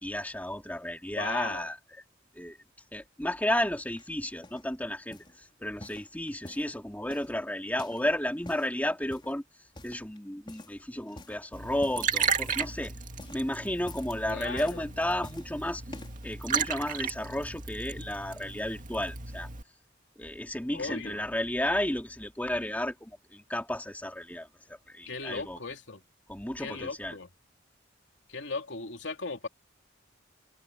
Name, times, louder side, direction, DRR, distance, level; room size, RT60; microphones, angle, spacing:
voice 1, 0.0-1.8 2.3-2.6 2.9-9.4 9.8-12.9 13.3-15.8 16.2-19.5 20.2-25.6 26.3-27.1, left 1 dB, 10° left, 2.4 m, -33 dB
voice 2, 1.1-1.7 14.3-15.0 20.7-21.3 25.0-26.0 26.6-27.3 28.3-29.5, left 4 dB, 75° left, 3.0 m, -38 dB
sound 1, 4.0-4.7 5.1-5.4 5.8-6.7 7.1-8.1 8.3-8.7 9.1-9.4 9.7-10.2 10.5-10.8 11.1-11.4 11.8-12.8 13.1-13.5 13.8-14.2 14.6-15.5 15.9-16.3 16.9-17.0, left 1 dB, 25° left, 4.8 m, -48 dB
Liquid, 11.5-19.6, right 6 dB, 45° right, 2.3 m, -34 dB
head